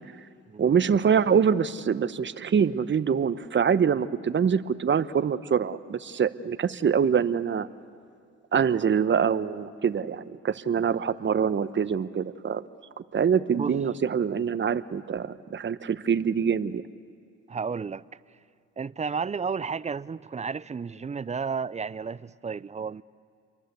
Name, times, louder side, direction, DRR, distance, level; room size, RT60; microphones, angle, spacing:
voice 1, 0.6-7.7 8.5-12.6 13.1-16.8, right 7 dB, 40° right, 1.0 m, -24 dB
voice 2, 17.5-18.2 18.8-23.0, right 5 dB, 25° right, 0.6 m, -32 dB
29.0 x 23.5 x 8.2 m
cardioid pair, 90°, 30 cm